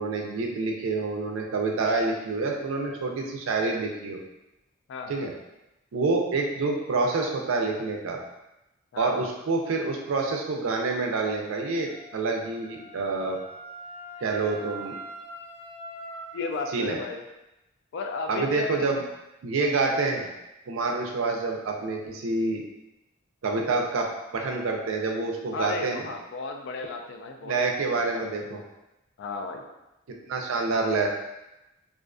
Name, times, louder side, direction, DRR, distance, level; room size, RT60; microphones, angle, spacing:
voice 1, 0.0-4.2 5.1-5.3 5.9-8.2 9.0-13.4 14.2-15.0 16.7-17.0 18.3-19.0 19.4-20.3 20.7-22.6 23.4-26.1 27.4-28.6 30.1-31.1, right 3 dB, 75° right, 1 dB, 0.4 m, -27 dB
voice 2, 4.9-5.3 8.9-9.3 16.3-17.2 17.9-18.8 25.5-28.6 29.2-29.6, left 4 dB, 60° left, 3 dB, 0.3 m, -35 dB
Wind instrument woodwind instrument, 11.9-16.5, right 1 dB, 15° right, 0.7 m, -42 dB
2.4 x 2.3 x 2.4 m, 0.95 s
head